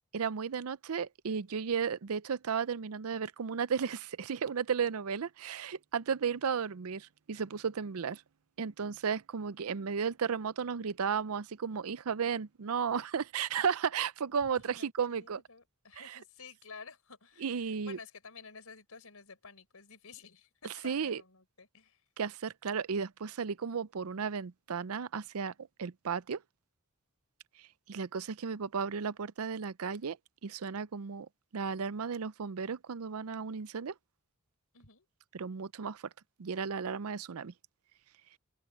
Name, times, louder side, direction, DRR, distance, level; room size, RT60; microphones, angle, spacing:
voice 1, 0.1-8.2 8.6-15.4 17.4-18.0 20.8-21.2 22.2-25.5 25.8-26.4 27.9-30.2 30.4-31.3 31.5-33.9 35.3-36.0 36.4-37.5, right 6 dB, 75° right, 0.5 m, -34 dB
voice 2, 14.4-22.0 34.7-35.1, left 5 dB, 80° left, 4.2 m, -52 dB
open air
head